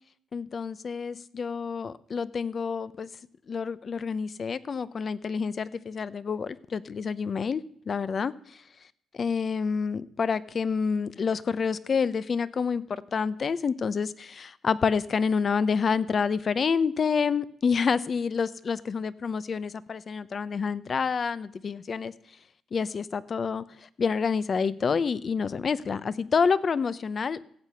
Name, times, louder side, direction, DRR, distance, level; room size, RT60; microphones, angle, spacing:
voice 1, 0.3-3.1 3.5-8.6 9.1-22.1 22.7-27.4, left 5 dB, 45° left, 16 dB, 0.6 m, -28 dB
15.0 x 8.1 x 5.7 m, 0.66 s
cardioid pair, 90°, 0 cm